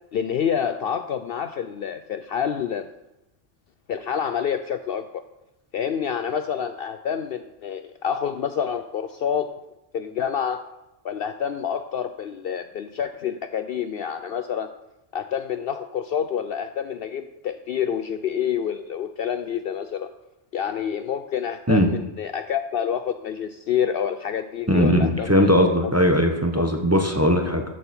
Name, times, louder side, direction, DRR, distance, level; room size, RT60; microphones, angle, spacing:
voice 1, 0.1-2.9 3.9-5.1 5.7-9.5 9.9-10.6 11.0-14.7 15.1-20.1 20.5-25.8 26.6-26.7, left 8 dB, 65° left, 9 dB, 0.7 m, -28 dB
voice 2, 24.7-27.6, equal, 15° right, 3 dB, 0.9 m, -19 dB
13.5 x 6.3 x 4.3 m, 0.91 s
omnidirectional pair, 1.2 m